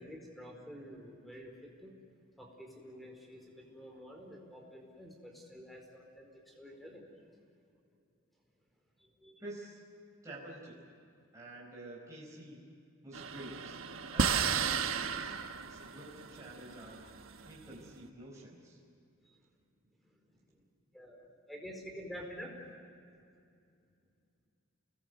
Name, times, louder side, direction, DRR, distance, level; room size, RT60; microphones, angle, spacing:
voice 1, 0.0-1.9 2.4-7.0 9.2-9.4 15.1-15.2 20.9-21.2 21.5-22.5, equal, ahead, 1 dB, 4.6 m, -49 dB
voice 2, 9.4-9.8 10.2-10.9 11.3-12.7 13.0-13.8 14.1-17.0 17.4-18.8, right 1 dB, 15° right, -5 dB, 4.6 m, -49 dB
sound 1, 13.1-17.8, right 6 dB, 80° right, 1.2 m, -34 dB
29.5 x 20.5 x 8.1 m, 2.5 s
head